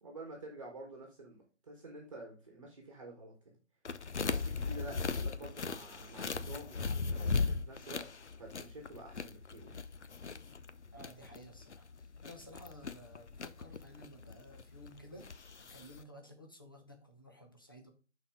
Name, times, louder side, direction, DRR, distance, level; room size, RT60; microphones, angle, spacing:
voice 1, 0.0-3.3 4.2-9.8, right 2 dB, 25° right, 1 dB, 1.4 m, -49 dB
sound 1, 3.8-16.0, left 4 dB, 70° left, 0.7 m, -38 dB
voice 2, 10.9-11.9 12.2-15.4 15.7-17.9, equal, 20° left, 3 dB, 0.7 m, -54 dB
11.0 x 4.3 x 3.6 m, 0.34 s
figure-of-eight pair, 160°, 36 cm